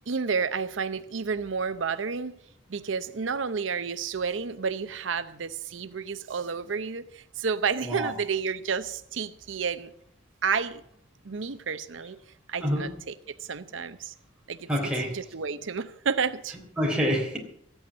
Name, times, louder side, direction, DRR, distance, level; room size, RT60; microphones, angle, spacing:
voice 1, 0.1-2.3 2.7-9.9 10.4-10.8 11.2-12.2 12.5-14.1 14.5-14.7 15.1-16.6, right 5 dB, 90° right, 0.7 m, -30 dB
voice 2, 7.8-8.1 12.6-12.9 14.7-15.1 16.8-17.4, equal, 5° right, 3.5 m, -26 dB
14.5 x 8.9 x 7.5 m
head